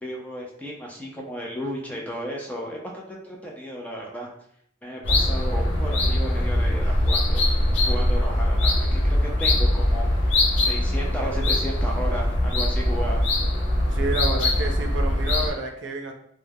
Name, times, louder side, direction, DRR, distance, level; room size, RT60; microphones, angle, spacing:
voice 1, 0.0-4.3 4.8-7.4 7.8-10.3 10.6-13.2, equal, 10° left, -2 dB, 0.4 m, -34 dB
sound 1, 5.0-15.5, left 1 dB, 80° left, 0.6 m, -22 dB
voice 2, 13.9-16.1, right 2 dB, 75° right, 3 dB, 0.4 m, -29 dB
2.3 x 2.1 x 3.3 m, 0.69 s
head